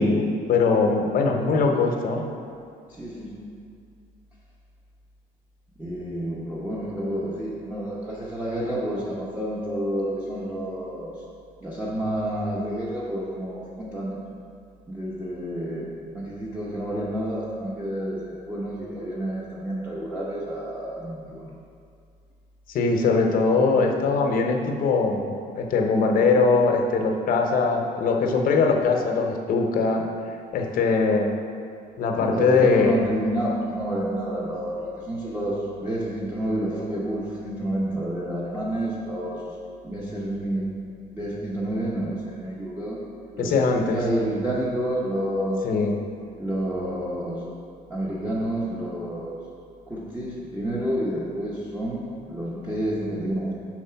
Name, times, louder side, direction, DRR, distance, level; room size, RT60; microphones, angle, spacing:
voice 1, 0.0-2.3 22.7-25.3 25.5-30.1 30.5-31.4 32.0-33.0 43.4-44.0 45.6-46.0, left 4 dB, 55° left, 3 dB, 0.8 m, -21 dB
voice 2, 2.9-3.4 5.8-11.1 11.6-14.2 14.9-15.9 16.1-21.5 32.2-39.5 39.8-40.7 41.1-43.0 43.3-45.7 46.4-47.4 47.9-49.3 49.9-52.0 52.3-53.5, right 1 dB, 10° right, -7 dB, 0.9 m, -29 dB
4.8 x 4.4 x 5.7 m, 2.3 s
cardioid pair, 110°, 17 cm